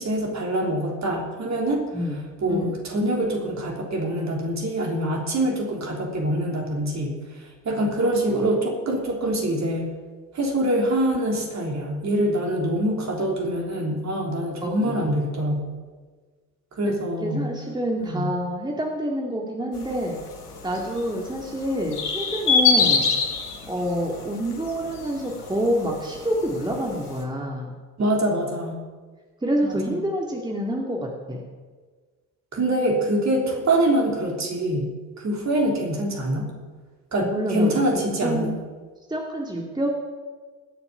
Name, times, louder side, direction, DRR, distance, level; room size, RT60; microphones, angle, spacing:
voice 1, 0.0-1.8 2.4-9.9 10.3-15.7 16.7-17.5 18.0-18.3 28.0-28.8 29.6-30.0 32.5-34.9 35.2-36.5 37.1-38.5, right 1 dB, 35° right, 0 dB, 3.4 m, -25 dB
voice 2, 8.0-8.4 14.6-15.1 17.2-20.2 20.6-23.1 23.7-27.7 29.4-31.5 37.2-38.6 39.1-39.9, equal, 10° right, 0 dB, 2.2 m, -27 dB
sound 1, 19.7-27.2, left 5 dB, 85° left, 1.4 m, -27 dB
20.0 x 7.0 x 5.7 m, 1.4 s
figure-of-eight pair, 55°, 45 cm